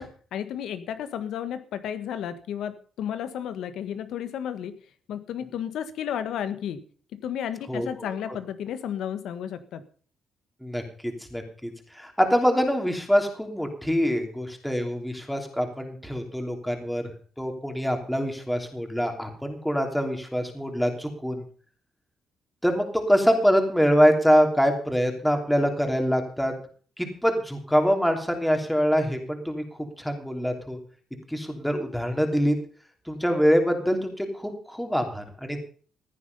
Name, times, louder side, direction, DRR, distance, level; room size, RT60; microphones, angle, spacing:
voice 1, 0.0-4.7 5.1-6.8 7.2-9.8, left 9 dB, 80° left, 11 dB, 1.5 m, -33 dB
voice 2, 10.6-17.1 17.4-21.4 22.6-26.5 27.0-30.8 31.3-32.6 33.1-35.6, equal, ahead, 4 dB, 3.1 m, -24 dB
15.5 x 9.8 x 5.4 m, 0.44 s
cardioid pair, 90°, 0 cm